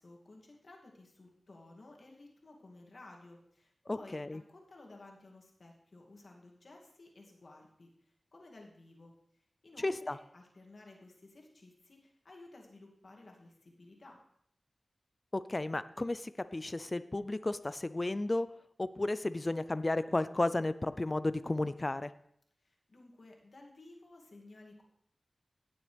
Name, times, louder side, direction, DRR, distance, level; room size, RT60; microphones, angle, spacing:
voice 1, 0.0-14.2 22.6-24.8, left 2 dB, 65° left, 0 dB, 2.4 m, -55 dB
voice 2, 3.9-4.4 9.8-10.2 15.3-18.5 18.8-22.1, left 2 dB, 35° left, 14 dB, 0.4 m, -33 dB
18.0 x 7.0 x 3.4 m, 0.69 s
cardioid pair, 50°, 0 cm